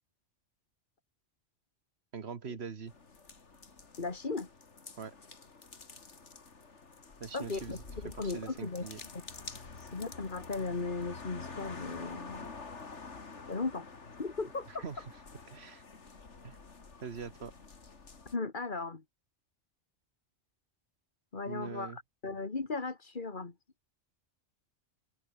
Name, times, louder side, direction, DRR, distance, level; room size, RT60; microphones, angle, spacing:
voice 1, 2.1-2.9 5.0-5.1 7.2-7.8 8.1-9.0 14.8-15.0 15.5-15.8 16.4-16.6 17.0-17.5 21.5-22.0, right 6 dB, 60° right, 1.7 m, -42 dB
sound 1, 2.9-18.4, left 4 dB, 80° left, 2.6 m, -48 dB
voice 2, 4.0-4.5 7.3-8.9 9.1-9.2 9.8-12.5 13.5-13.9 14.2-14.8 18.3-19.0 21.3-23.5, left 3 dB, 45° left, 2.0 m, -37 dB
open air
omnidirectional pair, 1.2 m